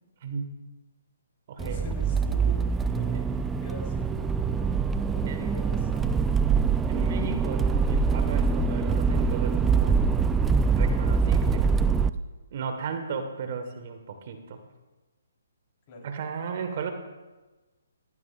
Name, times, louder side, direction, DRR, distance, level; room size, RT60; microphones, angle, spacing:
voice 1, 0.2-0.6 1.5-1.9 3.0-3.1 5.3-5.5 6.9-10.1 10.7-11.6 12.5-14.6 16.0-16.9, right 6 dB, 50° right, 7 dB, 1.4 m, -35 dB
voice 2, 1.6-4.7 5.0-6.6 6.8-7.0 15.9-16.1, left 2 dB, 35° left, -1 dB, 3.8 m, -44 dB
Accelerating revving vroom, 1.6-12.1, right 5 dB, 10° right, 0.4 m, -24 dB
14.5 x 14.5 x 2.5 m, 1.2 s
hypercardioid pair, 140°, 0 cm